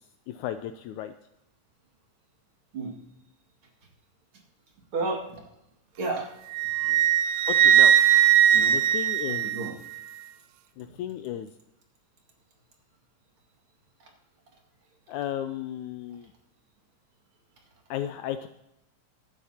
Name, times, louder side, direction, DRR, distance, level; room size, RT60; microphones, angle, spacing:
voice 1, 0.3-1.1 7.5-8.3 8.7-9.5 10.8-11.5 15.1-16.3 17.9-18.5, left 11 dB, 80° left, 9 dB, 1.9 m, -34 dB
voice 2, 4.9-5.4 5.9-7.0 8.5-8.8 9.3-9.7 10.8-11.0 14.0-14.1, right 3 dB, 45° right, 1 dB, 2.7 m, -33 dB
Wind instrument woodwind instrument, 6.5-10.0, right 10 dB, 80° right, 1.8 m, -20 dB
16.0 x 12.0 x 2.9 m, 0.84 s
omnidirectional pair, 3.6 m